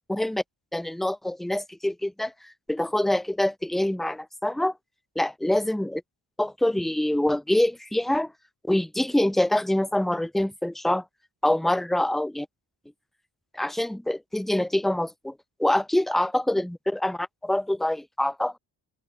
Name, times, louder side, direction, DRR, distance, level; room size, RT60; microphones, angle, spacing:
voice 1, 0.1-0.4 0.7-4.7 5.2-6.0 6.4-8.3 8.7-11.0 11.4-12.5 13.5-15.3 15.6-18.6, left 1 dB, ahead, 0.3 m, -25 dB
open air
wide cardioid pair, 115°, 47 cm